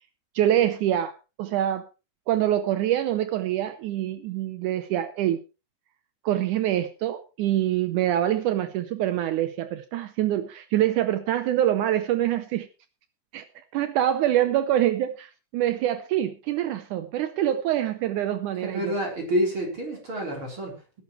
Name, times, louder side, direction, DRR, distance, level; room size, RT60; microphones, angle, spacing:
voice 1, 0.4-1.8 2.3-5.4 6.2-12.7 13.3-13.5 13.7-18.9, right 12 dB, 75° right, 11 dB, 2.2 m, -25 dB
voice 2, 18.5-21.0, equal, 40° right, 0 dB, 4.5 m, -29 dB
19.5 x 11.5 x 3.1 m, 0.30 s
omnidirectional pair, 3.7 m